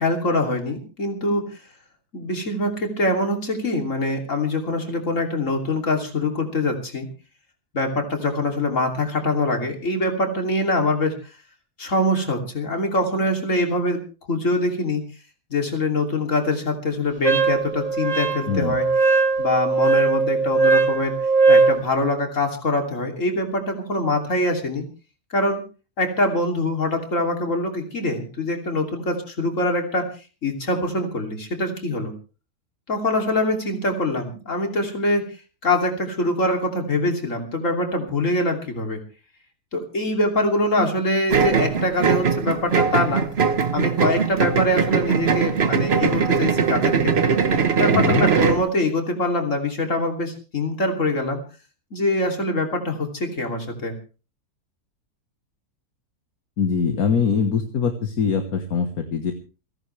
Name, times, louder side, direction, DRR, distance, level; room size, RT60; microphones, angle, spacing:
voice 1, 0.0-1.4 2.1-7.1 7.7-11.1 11.8-14.0 14.3-15.0 15.5-21.1 21.5-24.8 25.3-25.6 26.0-30.1 30.4-32.1 32.9-35.2 35.6-39.0 39.7-43.2 43.7-47.3 47.8-51.4 51.9-53.9, left 1 dB, 55° left, 3 dB, 3.4 m, -24 dB
Wind instrument woodwind instrument, 17.2-21.8, right 4 dB, 25° right, 1.2 m, -19 dB
sound 1, 41.3-48.7, right 6 dB, 45° right, 1.3 m, -20 dB
voice 2, 47.9-48.3 56.6-59.3, left 6 dB, 70° left, 6 dB, 1.9 m, -23 dB
29.0 x 11.0 x 3.3 m, 0.36 s
omnidirectional pair, 1.6 m